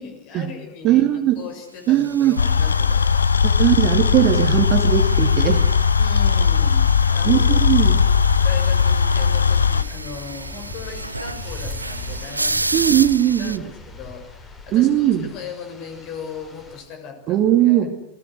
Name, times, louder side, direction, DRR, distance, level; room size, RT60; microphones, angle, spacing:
voice 1, 0.0-3.5 6.0-8.0 8.4-12.9 13.4-17.9, left 6 dB, 40° left, 6 dB, 6.5 m, -38 dB
voice 2, 0.8-1.4 1.9-2.4 3.4-5.6 7.2-8.0 12.7-13.6 14.7-15.3 17.3-17.9, right 12 dB, 35° right, 7 dB, 2.6 m, -19 dB
sound 1, 2.0-13.6, right 2 dB, 85° right, 0.8 m, -32 dB
sound 2, 2.4-9.8, left 6 dB, 70° left, 0.8 m, -18 dB
sound 3, 8.5-16.8, left 2 dB, 20° left, 6.8 m, -38 dB
28.0 x 20.5 x 6.4 m, 0.73 s
figure-of-eight pair, 90°, 0 cm